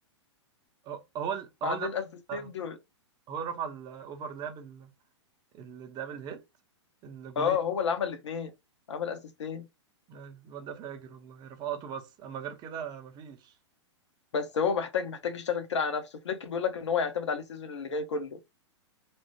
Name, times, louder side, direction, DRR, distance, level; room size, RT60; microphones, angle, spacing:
voice 1, 0.8-1.9 2.3-2.5 3.3-4.9 5.5-6.4 7.0-7.6 10.1-13.5, right 7 dB, 30° right, 0.6 m, -38 dB
voice 2, 1.6-2.0 2.3-2.8 7.4-8.5 8.9-9.7 14.3-18.4, left 6 dB, 70° left, 0.7 m, -31 dB
3.0 x 2.0 x 2.9 m
hypercardioid pair, 110°, 15 cm